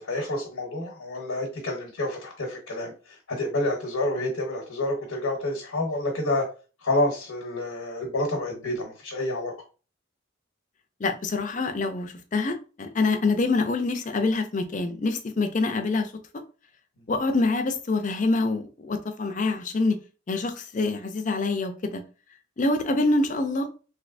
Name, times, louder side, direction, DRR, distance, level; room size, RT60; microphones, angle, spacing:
voice 1, 0.0-6.5 6.8-9.5, left 1 dB, 90° left, 1.0 m, -28 dB
voice 2, 11.0-16.1 17.1-20.0 20.3-22.0 22.6-23.7, left 3 dB, 35° left, 0.4 m, -25 dB
3.2 x 3.1 x 2.5 m
head